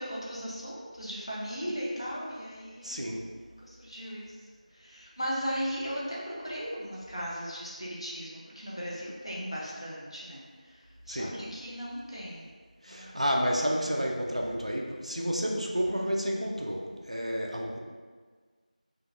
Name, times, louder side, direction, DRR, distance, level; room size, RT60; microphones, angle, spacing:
voice 1, 0.0-3.1 3.6-4.3 4.8-10.7 11.1-12.5 12.9-13.2, equal, 40° left, -5 dB, 0.7 m, -37 dB
voice 2, 2.8-3.2 11.1-11.4 12.8-17.8, equal, 50° right, 0 dB, 0.4 m, -30 dB
4.0 x 2.7 x 2.5 m, 1.5 s
figure-of-eight pair, 180°, 4 cm